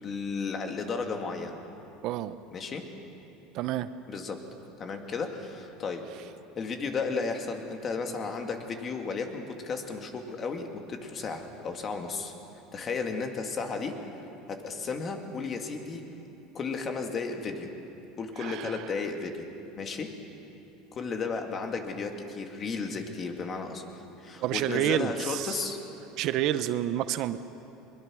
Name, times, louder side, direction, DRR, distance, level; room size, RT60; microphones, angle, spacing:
voice 1, 0.0-1.6 2.5-2.9 4.1-4.4 4.8-6.1 6.6-12.3 12.7-14.0 14.5-16.0 16.5-17.7 18.2-19.5 19.8-20.1 20.9-23.8 24.2-25.8, left 4 dB, 30° left, 4 dB, 2.1 m, -34 dB
voice 2, 2.0-2.4 3.5-3.9 18.4-18.9 24.3-25.7 26.2-27.4, right 12 dB, 55° right, 13 dB, 0.7 m, -29 dB
21.5 x 21.5 x 6.3 m, 3.0 s
supercardioid pair, 125°, 0 cm